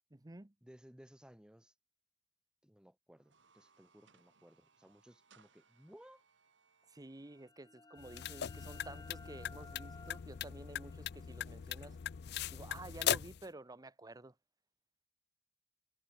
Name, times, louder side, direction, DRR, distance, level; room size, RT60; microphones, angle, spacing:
voice 1, 0.1-0.5 6.9-12.0 12.5-14.3, right 2 dB, 20° right, 0.8 m, -51 dB
voice 2, 0.6-1.7 2.6-6.2, equal, 5° right, 1.1 m, -60 dB
sound 1, 3.1-7.5, right 5 dB, 85° right, 3.6 m, -70 dB
sound 2, 7.2-12.7, left 3 dB, 20° left, 1.1 m, -59 dB
sound 3, 8.0-13.4, left 10 dB, 60° left, 0.4 m, -40 dB
head